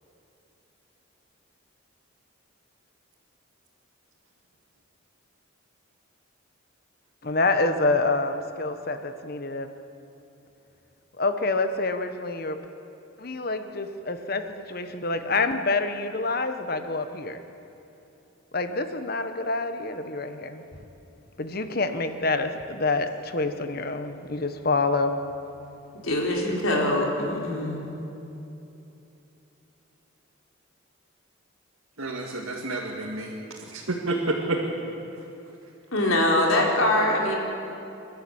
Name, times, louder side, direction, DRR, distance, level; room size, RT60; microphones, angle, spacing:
voice 1, 7.2-9.7 11.2-12.6 13.2-17.4 18.5-20.6 21.4-25.2, left 3 dB, 45° left, 9 dB, 1.2 m, -27 dB
voice 2, 26.0-27.8 35.9-37.4, left 1 dB, 80° left, -1 dB, 4.0 m, -23 dB
voice 3, 32.0-33.3 33.7-34.6, right 2 dB, 85° right, -2 dB, 2.2 m, -29 dB
27.5 x 13.0 x 8.9 m, 2.9 s
head